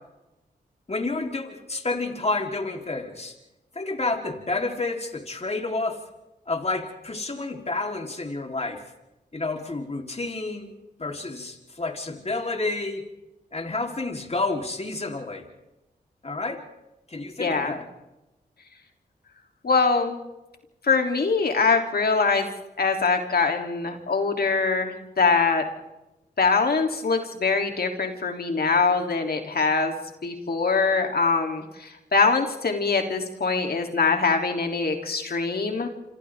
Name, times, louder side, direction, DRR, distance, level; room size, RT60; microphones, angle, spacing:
voice 1, 0.9-3.4 3.7-6.0 6.5-8.8 9.3-10.7 11.0-13.0 13.5-15.5 16.2-16.6 17.1-17.9, left 3 dB, 35° left, 2 dB, 3.8 m, -29 dB
voice 2, 17.4-17.7 19.6-20.2 20.8-22.5 22.8-25.6 26.4-29.9 30.2-35.9, left 4 dB, 65° left, 3 dB, 3.3 m, -23 dB
27.5 x 26.0 x 3.7 m, 0.97 s
cardioid pair, 45°, 18 cm